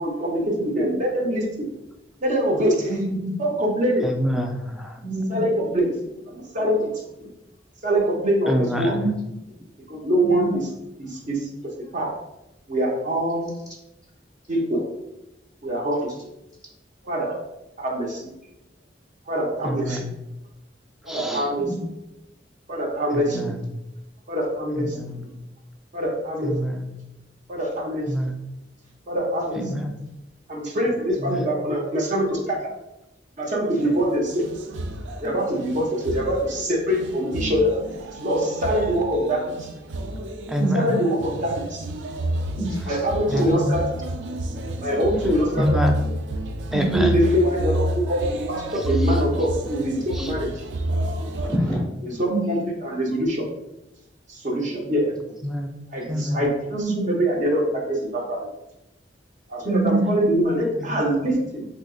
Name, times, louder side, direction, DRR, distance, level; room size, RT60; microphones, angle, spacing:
voice 1, 0.0-1.7 2.2-2.9 3.4-4.1 5.3-6.0 6.3-6.9 7.8-9.0 9.9-10.7 11.0-11.5 11.9-12.1 12.7-13.5 14.5-14.8 15.6-16.1 17.0-17.4 17.8-18.2 19.3-20.0 21.0-21.7 22.7-23.5 24.3-25.0 25.9-26.5 27.5-28.1 29.1-29.6 30.5-32.7 33.4-34.5 35.2-37.8 38.1-39.7 40.7-41.8 42.9-44.0 44.8-45.8 46.9-50.7 52.0-53.4 54.3-55.1 55.9-58.5 59.5-61.7, equal, 45° right, -1 dB, 0.6 m, -24 dB
voice 2, 2.9-3.3 5.0-5.4 8.9-9.2 9.6-9.7 10.2-10.6 21.6-21.9 23.3-23.6 40.6-41.0 42.6-43.0 46.7-47.1 51.4-51.8 52.3-52.6 56.7-57.1 59.6-60.1, right 2 dB, 25° right, -5 dB, 1.1 m, -26 dB
voice 3, 4.0-5.0 8.5-9.0 19.6-20.1 21.1-21.4 23.1-23.6 24.8-25.2 26.4-26.9 28.1-28.3 29.6-29.9 31.2-31.5 40.5-40.9 43.3-43.8 45.5-46.0 46.7-47.2 50.1-50.3 55.4-55.7 56.1-56.5 60.8-61.0, equal, 5° right, 3 dB, 0.3 m, -26 dB
sound 1, 33.8-51.6, right 1 dB, 85° right, 0.4 m, -30 dB
3.8 x 2.8 x 2.3 m, 0.91 s
head